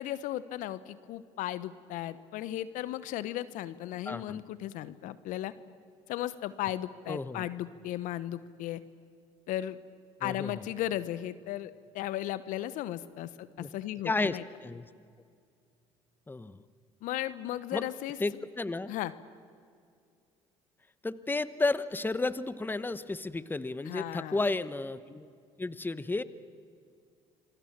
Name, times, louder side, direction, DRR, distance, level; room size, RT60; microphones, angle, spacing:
voice 1, 0.0-5.5 6.1-8.8 9.5-9.8 10.2-14.4 17.0-18.2 18.9-19.1 23.9-24.4, left 13 dB, 65° left, 16 dB, 1.0 m, -36 dB
voice 2, 4.1-4.4 7.1-7.5 10.2-10.7 13.6-13.7 14.0-14.8 16.3-16.6 17.7-17.8 18.2-18.9 21.0-25.3 25.6-26.2, left 3 dB, 15° left, 16 dB, 1.0 m, -32 dB
27.0 x 23.0 x 7.4 m, 2.2 s
hypercardioid pair, 65°, 14 cm